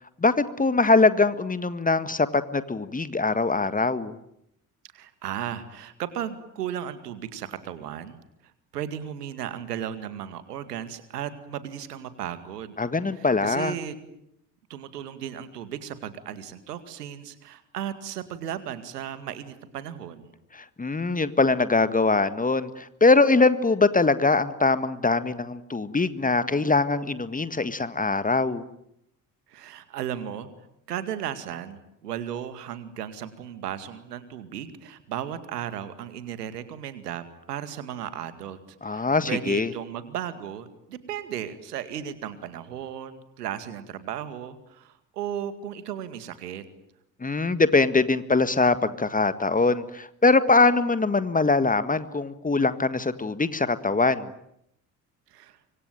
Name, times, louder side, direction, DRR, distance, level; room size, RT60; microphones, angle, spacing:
voice 1, 0.2-4.2 12.8-13.7 20.5-28.6 38.8-39.7 47.2-54.3, left 3 dB, 15° left, 13 dB, 1.7 m, -22 dB
voice 2, 4.9-8.2 8.7-12.7 13.1-14.0 14.7-20.3 29.5-30.5 30.9-46.6 55.3-55.6, right 10 dB, 75° right, 12 dB, 2.3 m, -35 dB
25.5 x 24.5 x 9.3 m, 0.78 s
figure-of-eight pair, 50°, 47 cm